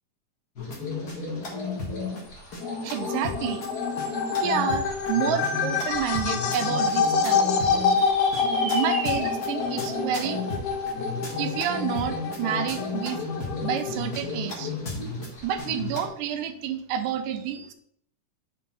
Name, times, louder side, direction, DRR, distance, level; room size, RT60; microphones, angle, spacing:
sound 1, 0.6-16.1, left 3 dB, 35° left, 1.8 m, -33 dB
sound 2, 2.1-12.8, right 2 dB, 50° right, 2.5 m, -42 dB
voice 1, 2.8-3.6 4.4-7.5 8.5-10.4 11.4-13.2 13.6-14.7 15.4-17.7, right 9 dB, 85° right, 8 dB, 2.2 m, -29 dB
sound 3, 2.9-14.2, left 5 dB, 80° left, 1.8 m, -27 dB
6.2 x 5.4 x 4.0 m, 0.66 s
omnidirectional pair, 3.7 m